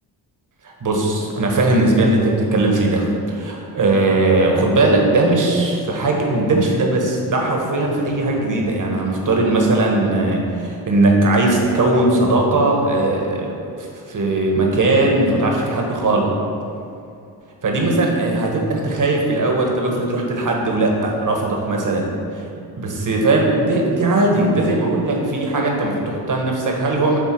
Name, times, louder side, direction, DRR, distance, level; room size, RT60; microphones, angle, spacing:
voice 1, 0.6-16.4 17.6-22.0 22.3-27.2, right 2 dB, 40° right, 0 dB, 1.4 m, -19 dB
7.6 x 3.2 x 4.6 m, 2.5 s
supercardioid pair, 50°, 49 cm